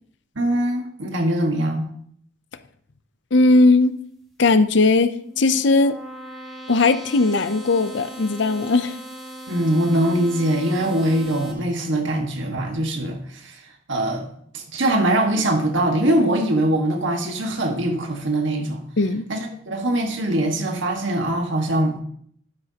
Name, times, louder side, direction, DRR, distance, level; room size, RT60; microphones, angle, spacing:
voice 1, 0.4-1.9 9.5-13.6 13.9-14.3 14.5-18.8 19.3-19.4 19.7-22.0, right 1 dB, 65° right, 2 dB, 1.7 m, -22 dB
voice 2, 3.3-3.9 4.4-5.9 6.7-9.0 19.0-19.2, left 3 dB, 60° left, 12 dB, 0.6 m, -18 dB
sound 1, 5.0-11.5, right 1 dB, ahead, 2.0 m, -38 dB
12.0 x 9.6 x 2.9 m, 0.64 s
head